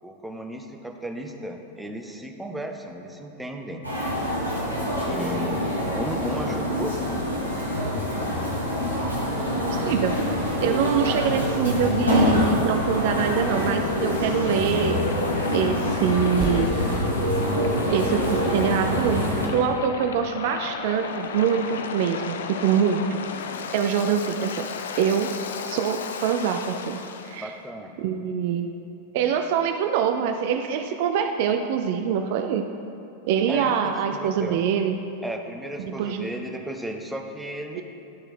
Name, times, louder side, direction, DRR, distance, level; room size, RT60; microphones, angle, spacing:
voice 1, 0.0-3.9 5.1-7.4 27.4-27.9 33.5-34.6 35.2-37.8, equal, 5° right, 3 dB, 0.6 m, -34 dB
sound 1, 3.8-19.5, equal, 85° left, 1.3 m, -25 dB
voice 2, 9.9-10.2 10.6-15.0 15.5-16.7 17.9-23.2 23.7-24.7 25.0-25.3 25.7-27.5 28.0-28.7 29.1-32.7 33.3-35.0 35.8-36.3 37.7-37.8, right 7 dB, 50° right, 6 dB, 0.3 m, -24 dB
Waves surf, 11.7-27.4, left 6 dB, 65° left, 0.4 m, -36 dB
Percussion, 16.4-21.2, right 2 dB, 25° right, 0.9 m, -37 dB
10.5 x 3.8 x 4.3 m, 2.8 s
figure-of-eight pair, 90°, 0 cm